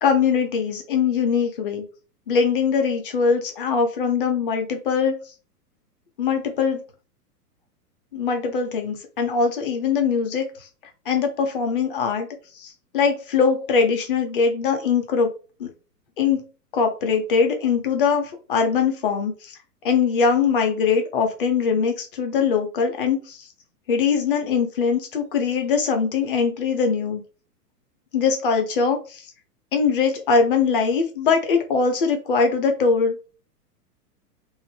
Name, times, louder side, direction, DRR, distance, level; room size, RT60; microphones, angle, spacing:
voice 1, 0.0-1.8 2.3-5.3 6.2-6.8 8.1-10.7 11.1-12.3 12.5-15.3 15.6-15.7 16.2-16.4 16.7-19.6 19.8-23.5 23.9-27.2 28.1-29.3 29.7-33.3, left 5 dB, 35° left, 5 dB, 0.6 m, -22 dB
2.7 x 2.0 x 3.1 m, 0.35 s
figure-of-eight pair, 110°, 49 cm